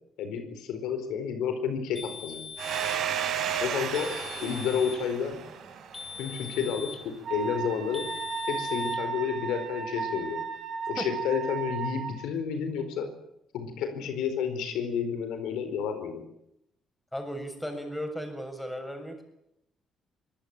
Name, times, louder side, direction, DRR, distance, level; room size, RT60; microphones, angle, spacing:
voice 1, 0.2-2.4 3.6-4.1 4.4-5.4 6.2-8.1 8.5-10.4 10.9-13.1 13.5-16.2, left 7 dB, 85° left, 8 dB, 4.4 m, -30 dB
sound 1, 2.0-3.1 3.9-5.1 5.9-7.1 7.9-9.0, left 6 dB, 30° left, 5.1 m, -41 dB
Domestic sounds home sounds, 2.6-7.0, right 8 dB, 70° right, 5.6 m, -33 dB
Wind instrument woodwind instrument, 7.2-12.2, right 5 dB, 50° right, 4.7 m, -34 dB
voice 2, 17.1-19.2, equal, 5° left, 5 dB, 7.2 m, -36 dB
24.0 x 19.0 x 9.0 m, 0.79 s
cardioid pair, 95°, 0 cm